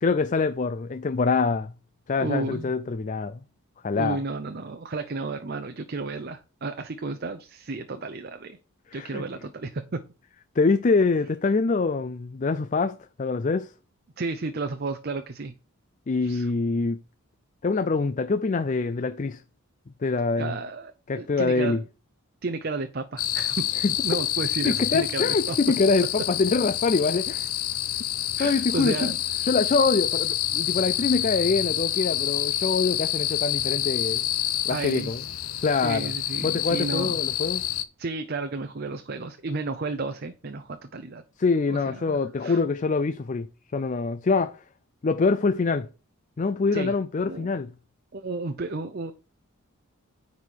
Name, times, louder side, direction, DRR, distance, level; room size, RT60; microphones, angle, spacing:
voice 1, 0.0-1.7 2.1-3.4 3.8-4.2 8.9-9.2 10.6-13.7 16.1-17.0 17.6-19.4 20.0-20.6 21.1-21.8 24.6-27.5 28.4-29.1 29.5-34.4 34.6-35.2 35.6-36.1 36.4-37.6 41.4-43.5 43.7-44.6 45.0-45.9 46.4-47.7, left 4 dB, 35° left, 0.4 m, -25 dB
voice 2, 2.2-2.7 3.9-8.6 8.9-10.0 14.2-15.5 16.2-16.5 20.4-21.8 22.4-23.7 24.0-25.6 28.4-29.2 34.7-35.1 35.8-37.2 38.0-41.2 41.7-42.6 46.7-46.9 47.3-47.5 48.1-49.1, right 3 dB, 45° right, 0.6 m, -32 dB
sound 1, 23.2-37.8, left 12 dB, 85° left, 0.8 m, -28 dB
9.7 x 4.2 x 4.6 m
head